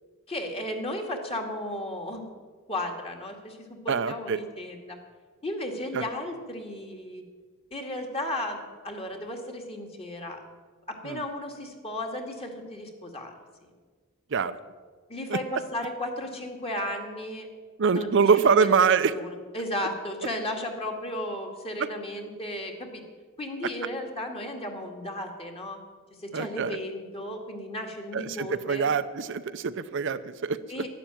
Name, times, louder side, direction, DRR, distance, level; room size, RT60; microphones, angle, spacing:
voice 1, 0.3-2.3 2.7-5.0 5.4-7.2 7.7-10.4 10.9-13.3 13.6-13.7 15.1-17.5 17.9-18.2 18.5-23.0 23.4-25.8 26.2-28.9 30.7-30.9, left 1 dB, 30° left, 3 dB, 2.2 m, -34 dB
voice 2, 3.9-4.4 5.9-6.0 11.0-11.2 14.3-14.6 15.3-15.4 17.8-19.1 21.8-21.9 26.3-26.8 28.1-30.6, right 5 dB, 60° right, 11 dB, 0.6 m, -24 dB
12.0 x 11.5 x 9.1 m, 1.5 s
head